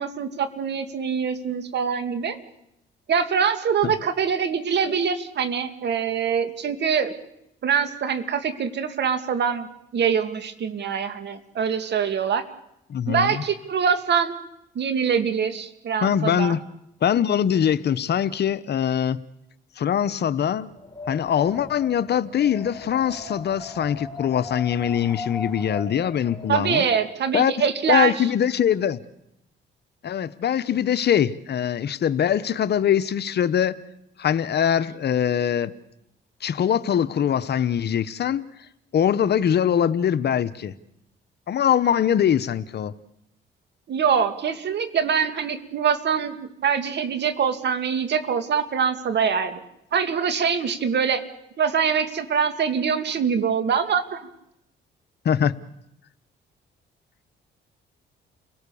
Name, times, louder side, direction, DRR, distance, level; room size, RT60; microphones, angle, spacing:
voice 1, 0.0-2.4 3.1-7.1 7.6-12.4 13.1-14.3 14.8-16.6 26.5-28.2 43.9-49.6 49.9-51.2 51.6-54.3, right 7 dB, 60° right, 8 dB, 2.3 m, -24 dB
voice 2, 12.9-13.4 16.0-16.6 17.0-19.2 19.8-20.7 21.1-26.8 27.3-27.5 27.9-29.0 30.0-33.8 34.2-35.7 36.4-38.4 38.9-40.7 41.5-42.9 55.2-55.5, left 9 dB, 55° left, 14 dB, 1.0 m, -22 dB
Wind, 20.7-26.8, left 3 dB, 15° left, 4.2 m, -38 dB
29.5 x 18.0 x 7.0 m, 0.82 s
cardioid pair, 90°, 20 cm